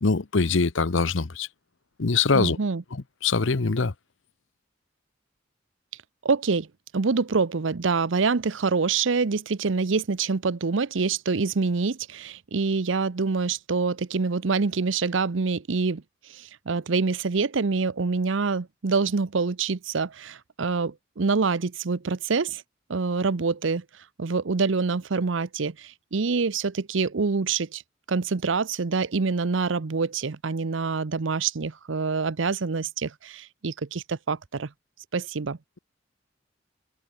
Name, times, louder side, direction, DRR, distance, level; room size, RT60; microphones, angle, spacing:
voice 1, 0.0-1.5 2.0-2.6 3.2-3.9, left 4 dB, 70° left, 0.9 m, -23 dB
voice 2, 2.3-2.8 6.2-6.7 6.9-16.0 16.3-22.6 22.9-23.8 24.2-27.8 28.1-34.7 35.1-35.6, right 4 dB, 70° right, 0.7 m, -26 dB
head